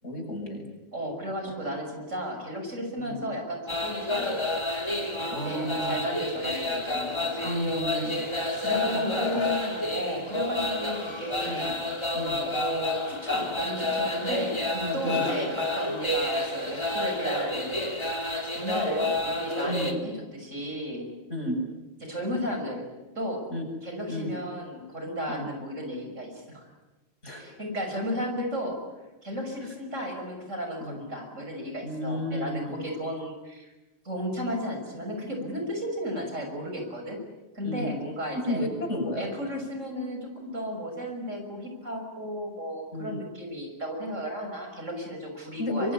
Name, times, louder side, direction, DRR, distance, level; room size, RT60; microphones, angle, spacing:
voice 1, 0.0-0.6 3.0-3.2 5.3-5.9 7.4-8.2 8.7-9.5 11.5-11.7 12.1-12.4 14.8-15.3 19.7-19.9 21.3-21.6 23.5-23.6 24.1-24.3 25.3-25.5 27.2-27.5 30.8-31.0 31.8-32.7 37.6-37.9 38.3-39.3 42.9-43.2 45.6-45.9, left 1 dB, 70° left, 1 dB, 7.4 m, -32 dB
voice 2, 0.9-4.7 5.2-7.5 8.6-11.8 12.4-14.5 14.9-17.8 18.5-21.1 22.0-22.8 23.1-23.4 23.8-26.6 27.3-28.8 29.2-33.7 34.0-37.2 37.5-38.6 39.2-45.9, equal, 75° right, 3 dB, 6.7 m, -34 dB
sound 1, 3.7-19.9, left 2 dB, 20° left, 3.1 m, -30 dB
24.5 x 24.5 x 9.8 m, 1.1 s
omnidirectional pair, 1.3 m